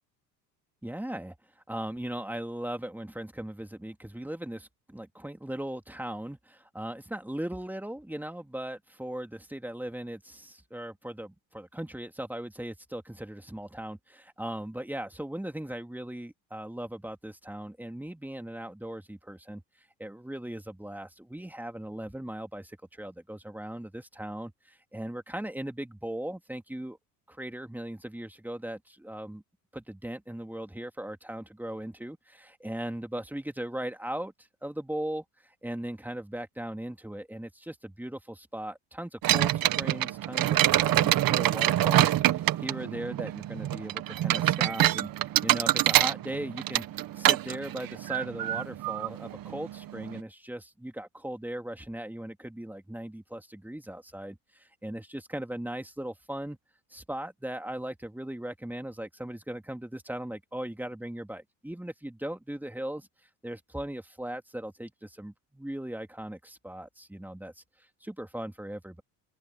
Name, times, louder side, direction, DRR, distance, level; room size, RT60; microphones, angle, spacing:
voice 1, 0.8-1.3 1.7-19.6 20.0-27.0 27.3-29.4 29.7-34.3 34.6-45.1 45.4-46.8 47.2-56.6 56.9-63.1 63.4-67.6 68.0-69.0, right 1 dB, 5° right, 2.7 m, -38 dB
sound 1, 39.2-50.2, right 13 dB, 50° right, 1.6 m, -26 dB
supercardioid pair, 80°, 44 cm